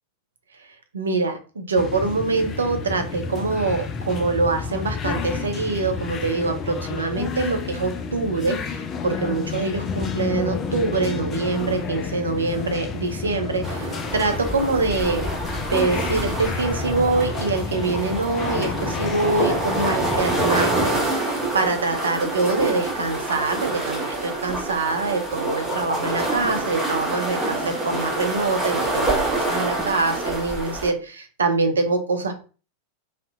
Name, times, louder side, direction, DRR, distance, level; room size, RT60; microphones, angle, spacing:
voice 1, 0.9-15.3 15.5-21.3 21.5-32.4, right 3 dB, 70° right, 6 dB, 0.4 m, -24 dB
sound 1, 1.8-21.0, left 5 dB, 30° left, 0.3 m, -30 dB
sound 2, 13.6-30.9, right 2 dB, 5° right, 0.9 m, -27 dB
2.6 x 2.0 x 2.3 m, 0.36 s
figure-of-eight pair, 90°, 0 cm